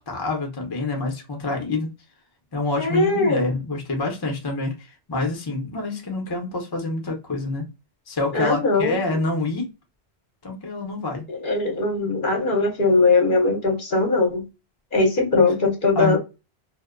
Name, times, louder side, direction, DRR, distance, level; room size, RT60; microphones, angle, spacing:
voice 1, 0.0-1.9 2.5-7.7 8.1-9.7 10.4-11.2 15.9-16.2, left 2 dB, 30° left, 0.6 m, -27 dB
voice 2, 2.8-3.4 8.3-9.0 11.3-14.4 14.9-16.2, left 3 dB, 55° left, 0.9 m, -20 dB
2.6 x 2.1 x 2.4 m
omnidirectional pair, 1.0 m